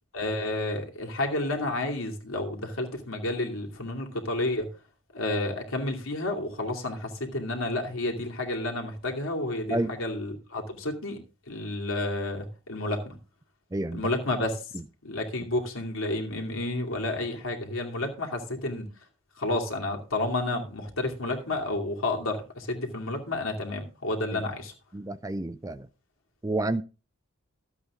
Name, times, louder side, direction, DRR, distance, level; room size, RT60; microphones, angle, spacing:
voice 1, 0.1-4.7 5.1-11.2 11.5-13.2 13.9-14.7 15.0-18.9 19.4-24.7, left 2 dB, 80° left, 2.6 m, -30 dB
voice 2, 13.7-14.0 24.3-24.4 24.9-25.9 26.4-26.8, right 1 dB, 15° right, 0.4 m, -29 dB
13.0 x 8.1 x 3.7 m
head